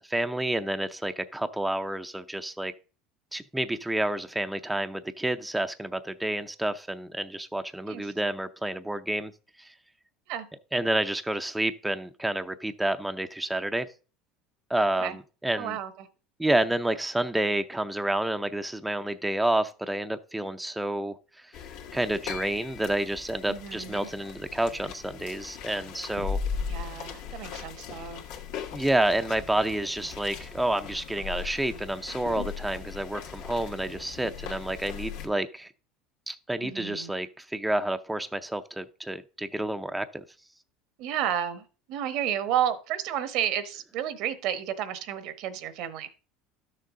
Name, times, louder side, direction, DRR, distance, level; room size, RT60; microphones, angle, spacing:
voice 1, 0.0-2.7 3.3-9.3 9.6-9.7 10.7-13.9 14.7-15.8 16.4-21.5 21.9-26.4 28.7-35.7 36.3-40.2, right 1 dB, 5° right, 0.5 m, -29 dB
voice 2, 15.6-16.1 23.5-24.1 26.7-28.2 36.6-37.1 41.0-46.3, right 10 dB, 65° right, 1.0 m, -32 dB
sound 1, 21.5-35.3, left 7 dB, 75° left, 1.9 m, -38 dB
12.0 x 6.7 x 3.7 m
supercardioid pair, 105°, 0 cm